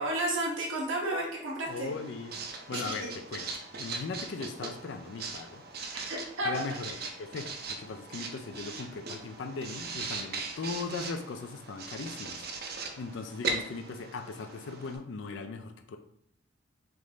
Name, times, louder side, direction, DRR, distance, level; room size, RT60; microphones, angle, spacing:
voice 1, 0.0-1.9 2.7-3.1 5.9-6.6, right 1 dB, 85° right, -2 dB, 1.2 m, -32 dB
voice 2, 1.7-2.3 2.7-3.5 3.8-5.6 6.4-12.4 13.0-16.0, left 4 dB, 70° left, 7 dB, 0.4 m, -38 dB
Writing, 1.7-15.0, right 4 dB, 50° right, 0.5 m, -40 dB
3.5 x 3.1 x 3.8 m, 0.69 s
head